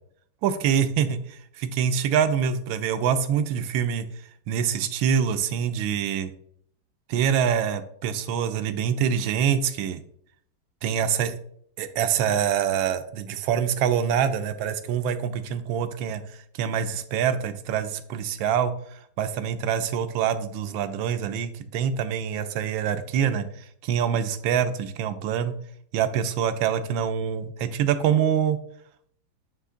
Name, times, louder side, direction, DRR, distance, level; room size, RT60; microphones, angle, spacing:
voice 1, 0.4-4.1 4.5-6.3 7.1-10.0 10.8-11.4 11.8-16.2 16.5-25.5 25.9-28.6, right 8 dB, 80° right, 10 dB, 1.3 m, -25 dB
9.2 x 3.2 x 3.7 m, 0.64 s
omnidirectional pair, 2.2 m